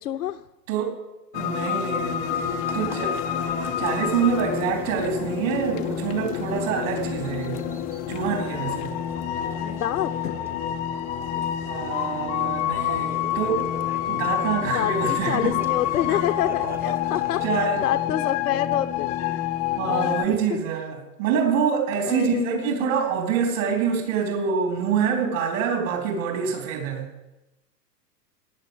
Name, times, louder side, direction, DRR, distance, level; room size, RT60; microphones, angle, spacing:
voice 1, 0.0-0.4 9.6-10.4 14.7-19.4 19.8-20.6 22.1-23.1, left 11 dB, 65° left, 7 dB, 0.8 m, -28 dB
voice 2, 0.7-1.0 1.3-7.6 8.1-8.9 11.7-13.7 14.1-15.6 16.1-16.2 17.4-17.8 19.8-27.0, right 7 dB, 50° right, 1 dB, 4.3 m, -26 dB
sound 1, 1.3-20.3, left 12 dB, 15° left, 0.4 m, -28 dB
sound 2, 2.3-17.7, right 1 dB, 5° right, 0.8 m, -41 dB
15.0 x 10.5 x 8.1 m, 1.0 s
figure-of-eight pair, 110°, 49 cm